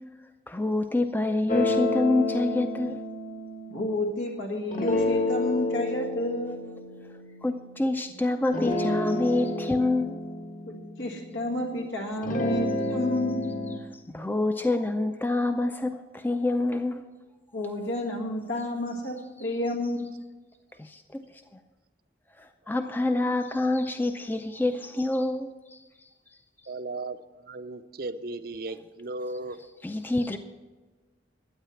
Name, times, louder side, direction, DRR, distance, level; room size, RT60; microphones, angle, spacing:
voice 1, 0.5-3.0 6.5-6.6 7.4-10.2 13.7-13.8 14.1-17.0 19.4-19.5 20.8-21.2 22.4-25.8 29.8-30.4, left 2 dB, 10° left, 7 dB, 0.4 m, -27 dB
sound 1, 1.5-4.2 4.7-8.1 8.5-11.7 12.1-13.8, left 2 dB, 45° left, 1.2 m, -30 dB
voice 2, 3.7-6.6 10.7-13.3 17.5-20.1, left 1 dB, 85° left, 0 dB, 1.8 m, -30 dB
voice 3, 26.7-27.2 27.5-29.6, right 2 dB, 50° right, 11 dB, 0.6 m, -36 dB
12.5 x 9.2 x 5.8 m, 1.3 s
head